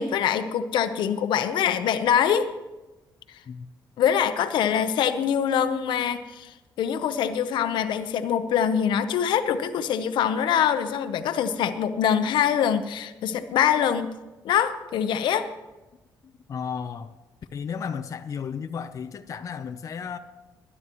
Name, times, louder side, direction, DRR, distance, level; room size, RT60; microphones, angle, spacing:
voice 1, 0.0-2.5 4.0-14.1 14.4-15.5, left 8 dB, 80° left, 10 dB, 0.8 m, -24 dB
voice 2, 16.5-17.2 17.5-20.2, left 6 dB, 45° left, 8 dB, 0.6 m, -33 dB
20.5 x 11.0 x 3.1 m, 1.1 s
cardioid pair, 120°, 8 cm